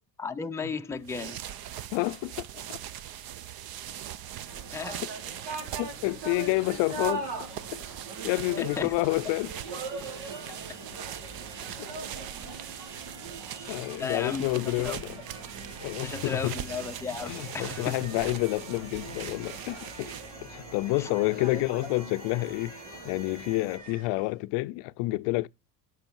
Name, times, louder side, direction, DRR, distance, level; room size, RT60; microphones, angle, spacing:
voice 1, 0.2-1.4 4.7-5.0 8.6-8.9 13.5-14.5 14.8-15.0 16.0-17.9 21.0-21.1 21.5-21.6, left 5 dB, 5° left, 0.5 m, -35 dB
sound 1, 0.9-20.5, right 11 dB, 50° right, 0.8 m, -41 dB
voice 2, 1.9-2.8 5.8-7.5 8.2-9.5 11.8-11.9 13.7-15.2 15.8-16.6 17.3-20.1 20.4-22.8 23.0-25.5, left 22 dB, 65° left, 0.5 m, -29 dB
sound 2, 4.5-24.3, right 3 dB, 75° right, 4.1 m, -41 dB
sound 3, 16.6-23.8, right 2 dB, 20° right, 3.7 m, -54 dB
10.5 x 6.2 x 4.6 m
supercardioid pair, 95°, 47 cm